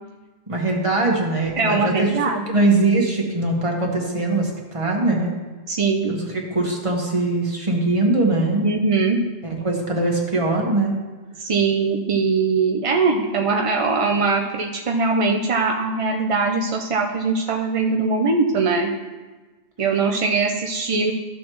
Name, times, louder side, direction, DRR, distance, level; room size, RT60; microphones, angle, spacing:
voice 1, 0.5-2.1 2.5-5.3 6.1-8.7 9.4-10.9, right 2 dB, 30° right, -1 dB, 1.5 m, -21 dB
voice 2, 1.6-2.4 5.7-6.2 8.6-9.2 11.4-18.9 19.8-21.1, right 4 dB, 45° right, 1 dB, 0.4 m, -21 dB
13.5 x 6.3 x 3.1 m, 1.3 s
omnidirectional pair, 1.2 m